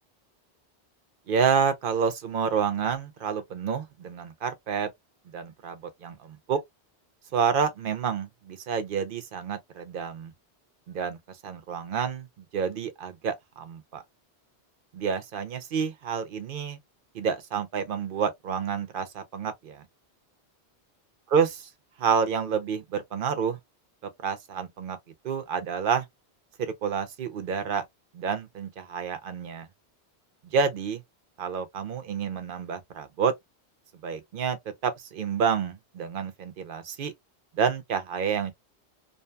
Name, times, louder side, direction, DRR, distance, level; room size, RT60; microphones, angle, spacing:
voice 1, 1.3-4.9 5.3-6.6 7.3-10.3 10.9-11.2 11.4-14.0 14.9-16.8 17.1-19.8 21.3-21.7 22.0-23.6 24.2-25.0 25.2-26.0 26.6-27.8 28.1-29.7 30.5-31.0 31.4-33.3 34.0-34.6 34.8-37.1 37.5-38.5, right 6 dB, 55° right, 0.8 m, -29 dB
2.8 x 2.4 x 2.2 m
omnidirectional pair, 1.1 m